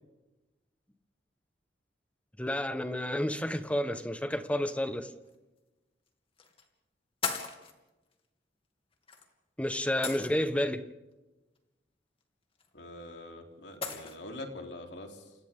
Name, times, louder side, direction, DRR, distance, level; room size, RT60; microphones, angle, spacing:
voice 1, 2.4-5.1 9.6-10.8, left 1 dB, 10° left, 1.3 m, -30 dB
sound 1, 5.2-5.3 6.4-6.6 7.2-7.7 9.1-9.3 10.0-10.6 12.6-12.7 13.8-14.2, left 5 dB, 30° left, 2.7 m, -36 dB
voice 2, 12.7-15.3, left 1 dB, 80° left, 3.7 m, -44 dB
30.0 x 28.5 x 3.8 m
head